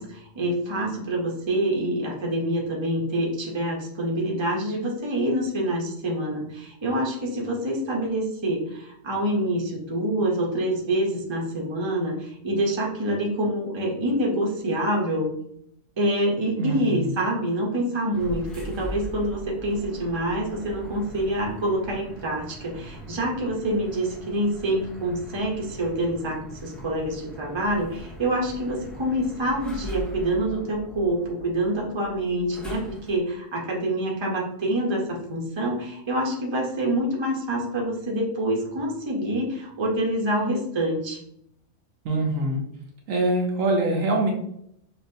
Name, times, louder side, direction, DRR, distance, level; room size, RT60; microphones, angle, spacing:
voice 1, 0.0-15.3 16.0-41.2, right 1 dB, 25° right, -2 dB, 0.8 m, -26 dB
voice 2, 16.6-17.1 42.0-42.6 43.1-44.3, right 2 dB, 80° right, 0 dB, 1.2 m, -24 dB
sound 1, 18.1-33.3, equal, ahead, 0.4 m, -41 dB
5.8 x 2.5 x 2.7 m, 0.72 s
omnidirectional pair, 1.4 m